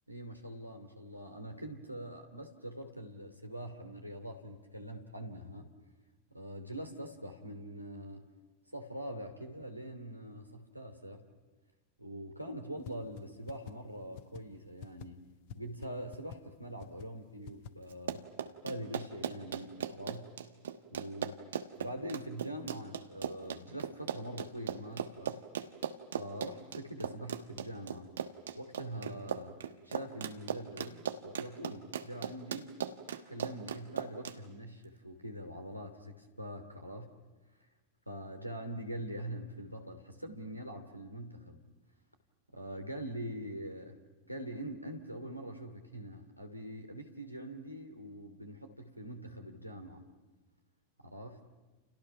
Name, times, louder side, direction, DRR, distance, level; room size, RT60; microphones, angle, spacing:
voice 1, 0.1-5.7 6.3-8.2 8.7-11.2 12.0-15.2 15.5-18.2 18.6-20.3 20.9-21.3 21.8-25.4 26.2-28.1 28.5-32.7 33.3-37.1 38.1-41.6 42.5-44.0 44.2-50.0 51.0-51.4, right 1 dB, 90° right, 5 dB, 2.8 m, -43 dB
sound 1, 12.9-13.0 13.2-13.3 13.5-13.7 14.2-14.4 14.8-15.1 15.5-15.6 15.8-15.9 16.1-16.4 16.8-17.1 17.5-17.7, left 10 dB, 50° left, 0.9 m, -45 dB
Run, 17.9-34.4, right 8 dB, 65° right, 1.4 m, -38 dB
30.0 x 29.5 x 5.9 m, 1.2 s
figure-of-eight pair, 90°, 0 cm